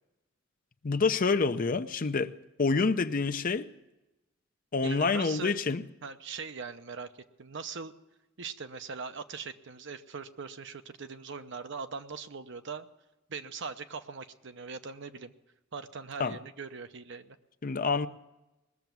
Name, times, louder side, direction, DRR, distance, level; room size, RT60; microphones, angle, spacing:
voice 1, 0.8-2.3 2.6-3.7 4.7-5.8 16.2-16.4 17.6-18.1, left 4 dB, 45° left, 0.6 m, -27 dB
voice 2, 4.8-5.6 6.0-7.1 7.4-7.9 8.4-12.9 13.3-15.3 15.7-17.4, right 5 dB, 60° right, 0.8 m, -41 dB
20.0 x 7.1 x 9.2 m
head